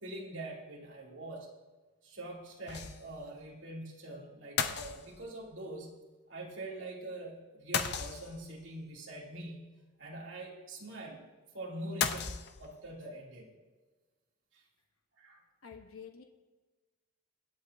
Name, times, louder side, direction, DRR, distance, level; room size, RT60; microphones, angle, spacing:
voice 1, 0.0-1.5 2.0-5.9 6.3-9.7 10.0-11.3 11.5-13.5 15.2-15.4, right 1 dB, 65° right, -3 dB, 2.7 m, -44 dB
sound 1, 2.7-3.2 3.5-3.6 4.6-5.5 7.7-8.6 12.0-12.9, left 7 dB, 50° left, 0.7 m, -35 dB
voice 2, 15.6-16.2, left 6 dB, 85° left, 3 dB, 1.1 m, -48 dB
24.5 x 8.7 x 2.7 m, 1.3 s
head